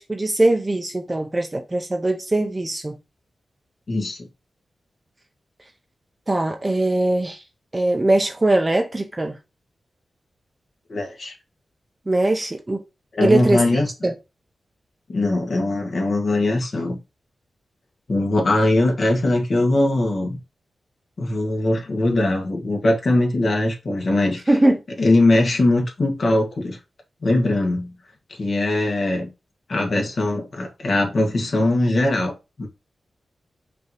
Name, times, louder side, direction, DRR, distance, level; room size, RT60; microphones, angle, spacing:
voice 1, 0.0-3.0 6.3-7.4 7.7-9.4 12.1-12.8 13.2-14.1 24.5-24.8, right 2 dB, 25° right, 0.5 m, -21 dB
voice 2, 3.9-4.3 10.9-11.3 13.1-13.9 15.1-17.0 18.1-20.4 21.2-24.4 25.0-26.8 27.2-28.0 28.4-29.3 29.7-32.7, left 2 dB, 60° left, 1.3 m, -21 dB
5.4 x 2.7 x 2.9 m
wide cardioid pair, 80°, 0 cm